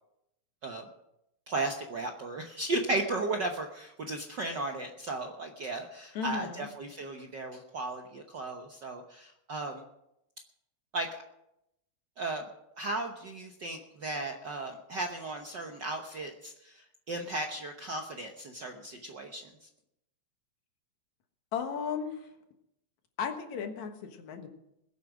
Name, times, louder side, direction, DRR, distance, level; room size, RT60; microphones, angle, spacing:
voice 1, 1.5-9.8 10.9-11.2 12.2-12.5 12.8-19.7, right 2 dB, 60° right, 3 dB, 1.1 m, -35 dB
voice 2, 6.1-6.7 21.5-22.3 23.2-24.5, left 6 dB, 75° left, 5 dB, 2.7 m, -35 dB
21.0 x 8.5 x 6.1 m, 0.84 s
omnidirectional pair, 3.4 m